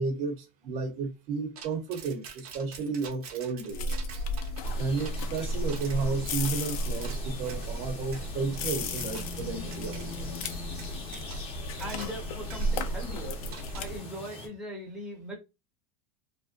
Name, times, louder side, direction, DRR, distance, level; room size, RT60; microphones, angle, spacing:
voice 1, 0.0-4.0 4.8-10.3, right 4 dB, 50° right, 0.7 m, -33 dB
sound 1, 1.6-7.7 8.1-8.3 8.7-9.4 9.7-10.0 10.4-12.2 12.5-12.7 13.5-14.0, right 6 dB, 90° right, 0.9 m, -46 dB
sound 2, 3.7-14.0, left 1 dB, 80° left, 0.5 m, -34 dB
sound 3, 4.6-14.5, left 2 dB, 30° left, 0.8 m, -42 dB
voice 2, 11.8-13.4 13.8-15.3, equal, ahead, 0.7 m, -39 dB
2.5 x 2.1 x 2.5 m
supercardioid pair, 135°, 18 cm